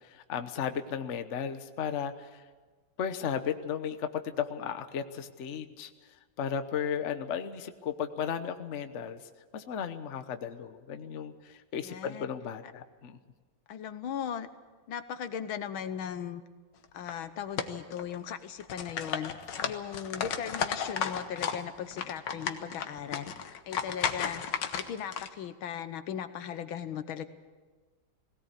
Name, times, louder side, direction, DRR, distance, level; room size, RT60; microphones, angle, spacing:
voice 1, 0.0-2.4 3.0-5.9 6.4-9.2 9.5-13.2, left 8 dB, 45° left, 9 dB, 1.1 m, -35 dB
voice 2, 11.8-12.3 12.6-12.7 13.7-14.5 14.9-16.4 16.9-19.3 19.6-23.3 23.7-24.4 24.8-27.2, left 8 dB, 80° left, 11 dB, 1.8 m, -38 dB
sound 1, 16.8-17.1 17.6-18.3 18.6-21.6 21.9-25.3, left 7 dB, 65° left, 1.7 m, -34 dB
19.5 x 17.5 x 8.3 m, 1.4 s
omnidirectional pair, 2.2 m